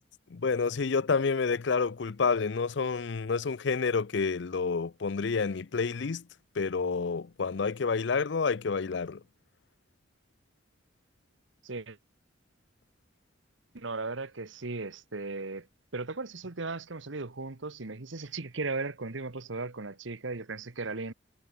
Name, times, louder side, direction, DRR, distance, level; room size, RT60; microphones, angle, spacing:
voice 1, 0.3-6.2 6.6-9.2, left 5 dB, 60° left, 0.5 m, -29 dB
voice 2, 11.6-12.0 13.7-15.7 15.9-21.1, right 3 dB, 70° right, 1.3 m, -36 dB
head